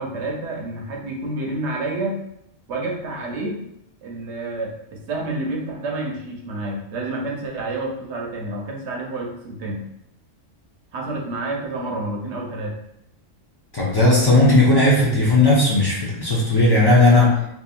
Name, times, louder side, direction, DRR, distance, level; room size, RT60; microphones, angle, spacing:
voice 1, 0.0-2.2 2.7-3.6 4.0-9.9 10.9-12.7 16.9-17.5, right 2 dB, 70° right, -1 dB, 0.9 m, -29 dB
voice 2, 13.7-17.3, left 2 dB, 40° left, -6 dB, 0.3 m, -16 dB
2.8 x 2.5 x 2.4 m, 0.78 s
omnidirectional pair, 1.3 m